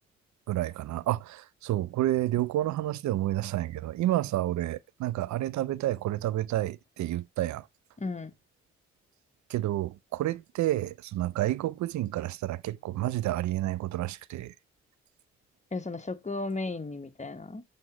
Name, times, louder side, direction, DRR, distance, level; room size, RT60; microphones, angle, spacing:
voice 1, 0.5-7.6 9.5-14.5, right 14 dB, 70° right, 0.4 m, -30 dB
voice 2, 8.0-8.3 15.7-17.6, left 3 dB, 25° left, 1.0 m, -35 dB
7.6 x 2.9 x 4.8 m
supercardioid pair, 40°, 30 cm